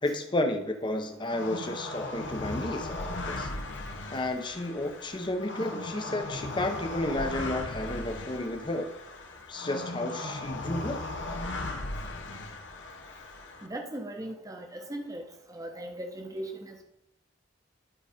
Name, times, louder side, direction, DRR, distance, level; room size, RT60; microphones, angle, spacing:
voice 1, 0.0-3.5 4.1-8.9 9.5-11.0, left 1 dB, 25° left, 5 dB, 0.9 m, -32 dB
sound 1, 1.3-13.7, left 2 dB, 70° left, 0.9 m, -37 dB
voice 2, 13.6-15.2 15.5-16.8, right 1 dB, 20° right, 3 dB, 1.0 m, -38 dB
11.0 x 4.1 x 5.0 m, 0.82 s
head